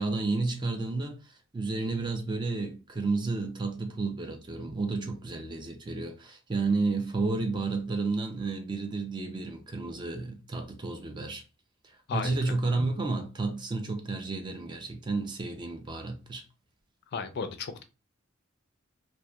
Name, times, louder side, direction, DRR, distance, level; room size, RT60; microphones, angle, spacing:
voice 1, 0.0-11.4 12.1-16.4, right 3 dB, 20° right, 0.4 m, -31 dB
voice 2, 17.1-17.8, left 5 dB, 55° left, 0.3 m, -34 dB
2.7 x 2.1 x 2.2 m
head